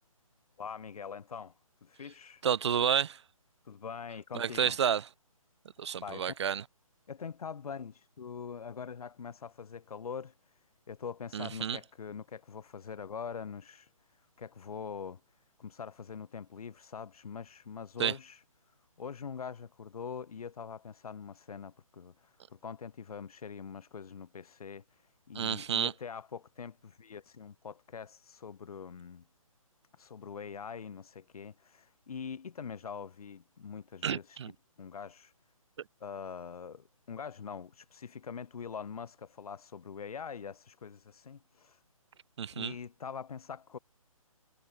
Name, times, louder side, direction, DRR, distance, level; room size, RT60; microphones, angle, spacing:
voice 1, 0.6-1.5 1.8-2.4 3.6-4.8 6.0-6.4 7.1-10.3 10.9-15.2 15.6-18.4 19.0-29.2 30.0-34.4 34.8-35.3 36.0-41.8 42.5-43.8, left 6 dB, 90° left, 0.5 m, -43 dB
voice 2, 2.4-3.2 4.3-5.1 5.8-6.6 11.3-11.8 18.0-18.1 25.3-25.9 34.0-34.5 42.4-42.7, right 8 dB, 50° right, 0.4 m, -30 dB
figure-of-eight pair, 150°, 18 cm